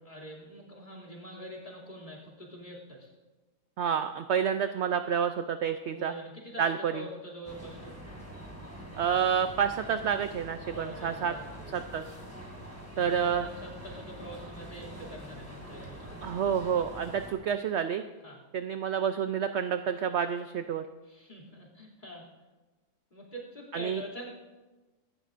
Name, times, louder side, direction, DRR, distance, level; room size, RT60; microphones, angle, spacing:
voice 1, 0.0-3.1 5.8-8.0 10.7-11.8 12.9-16.3 18.2-18.4 21.0-22.3 23.1-24.3, equal, 30° left, -2 dB, 2.9 m, -45 dB
voice 2, 3.8-6.1 6.6-7.0 9.0-11.3 11.7-12.0 13.0-13.5 16.2-18.0 18.5-20.9 23.7-24.0, right 8 dB, 65° right, 9 dB, 0.7 m, -29 dB
sound 1, 7.4-17.3, equal, 10° right, 3.2 m, -45 dB
24.5 x 11.5 x 2.5 m, 1.2 s
omnidirectional pair, 1.6 m